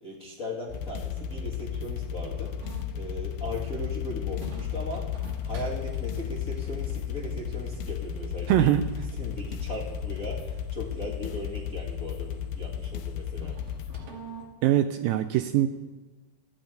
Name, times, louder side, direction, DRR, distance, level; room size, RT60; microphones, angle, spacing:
voice 1, 0.0-2.5 2.9-5.1 5.4-8.7 9.2-13.6, left 1 dB, 55° left, -4 dB, 0.9 m, -38 dB
sound 1, 0.7-14.0, left 8 dB, 80° left, 2.7 m, -34 dB
sound 2, 2.2-14.5, right 2 dB, 60° right, 3.6 m, -49 dB
voice 2, 8.5-8.8 14.6-15.7, right 12 dB, 85° right, 8 dB, 2.0 m, -22 dB
13.5 x 9.0 x 9.0 m, 1.2 s
omnidirectional pair, 4.6 m